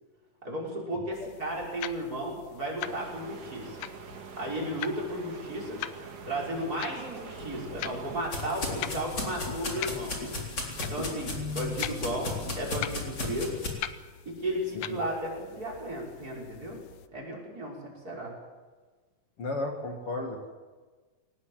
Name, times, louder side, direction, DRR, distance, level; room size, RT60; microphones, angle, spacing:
voice 1, 0.4-3.8 4.4-5.8 6.3-10.2 10.8-13.6 14.2-16.8 17.1-18.4, right 1 dB, 25° right, 0 dB, 6.2 m, -34 dB
sound 1, 1.1-17.1, left 11 dB, 80° left, 2.5 m, -43 dB
sound 2, 2.8-8.3, right 6 dB, 85° right, 3.6 m, -45 dB
sound 3, 7.3-13.7, left 2 dB, 35° left, 4.3 m, -35 dB
voice 2, 19.4-20.5, left 2 dB, 50° left, 2 dB, 2.9 m, -34 dB
23.0 x 19.0 x 7.8 m, 1.4 s
omnidirectional pair, 3.6 m